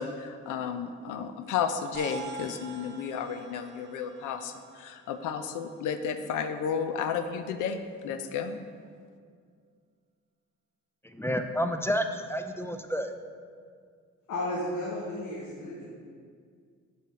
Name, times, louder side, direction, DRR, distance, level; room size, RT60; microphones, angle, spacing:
voice 1, 0.0-8.6, left 7 dB, 85° left, 9 dB, 0.5 m, -32 dB
sound 1, 1.9-6.5, right 6 dB, 65° right, 1.0 m, -46 dB
voice 2, 11.0-13.1, equal, 10° left, 7 dB, 0.3 m, -30 dB
voice 3, 14.3-15.9, left 1 dB, 70° left, -4 dB, 1.1 m, -33 dB
7.0 x 4.4 x 4.8 m, 2.1 s
cardioid pair, 90°, 30 cm